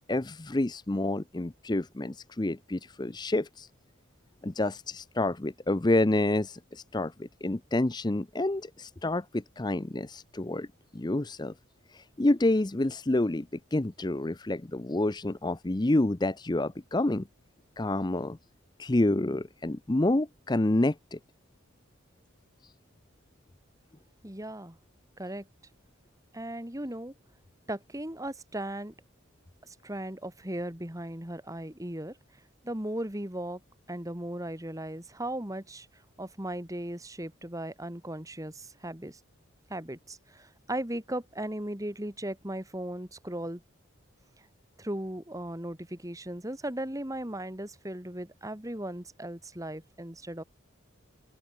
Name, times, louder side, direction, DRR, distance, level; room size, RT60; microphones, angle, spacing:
voice 1, 0.1-3.7 4.4-10.7 10.9-11.5 11.9-17.3 17.8-18.4 18.8-21.2 22.6-22.7, left 2 dB, 20° left, 0.6 m, -28 dB
voice 2, 24.2-24.8 25.2-25.5 26.3-27.1 27.7-28.9 29.6-32.1 32.6-33.6 33.9-35.9 36.2-39.2 39.7-43.6 44.8-50.4, right 1 dB, 15° right, 2.3 m, -37 dB
open air
head